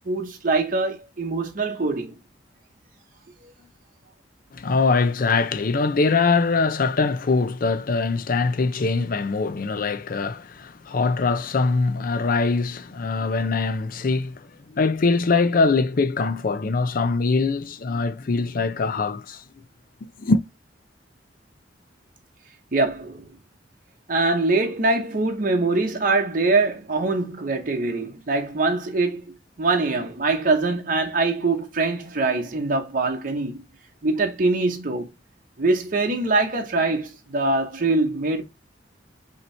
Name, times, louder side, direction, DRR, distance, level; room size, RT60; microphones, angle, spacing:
voice 1, 0.1-2.1 3.4-3.5 22.7-23.3 24.1-29.3 29.6-33.6 34.0-35.1 35.6-38.4, right 3 dB, 50° right, 0.8 m, -23 dB
voice 2, 4.5-19.4 20.2-20.4, left 4 dB, 50° left, 0.5 m, -22 dB
5.4 x 2.9 x 3.2 m
head